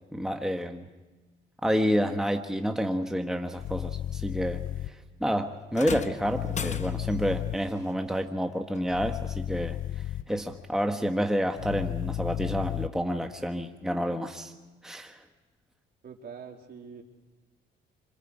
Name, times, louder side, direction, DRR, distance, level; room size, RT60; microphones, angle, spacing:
voice 1, 0.1-0.9 1.6-4.6 5.2-9.8 10.3-14.5 14.8-15.2, equal, ahead, 5 dB, 1.2 m, -29 dB
sound 1, 3.5-4.9 6.2-7.6 8.9-10.2 11.6-12.9, left 11 dB, 75° left, 0.8 m, -33 dB
door push bar open nearby echo large room, 5.7-7.3 8.7-8.9 9.8-9.9, left 6 dB, 35° left, 1.1 m, -36 dB
voice 2, 16.0-17.0, right 6 dB, 55° right, 2 dB, 3.5 m, -44 dB
28.5 x 26.0 x 4.9 m, 1.2 s
cardioid pair, 90°, 20 cm